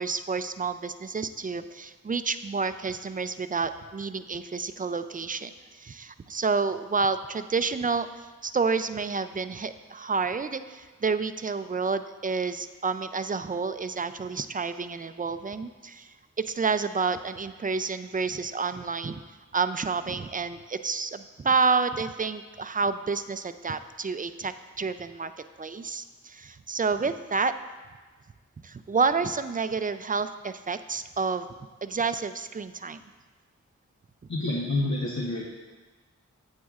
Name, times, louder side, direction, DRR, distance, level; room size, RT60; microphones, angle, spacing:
voice 1, 0.0-16.1 16.5-19.2 19.5-25.3 25.6-27.5 28.6-31.5 31.8-33.0, right 4 dB, 30° right, 11 dB, 0.3 m, -29 dB
voice 2, 34.3-35.5, left 2 dB, 70° left, -2 dB, 0.9 m, -28 dB
9.1 x 8.3 x 2.4 m, 1.3 s
wide cardioid pair, 60°, 29 cm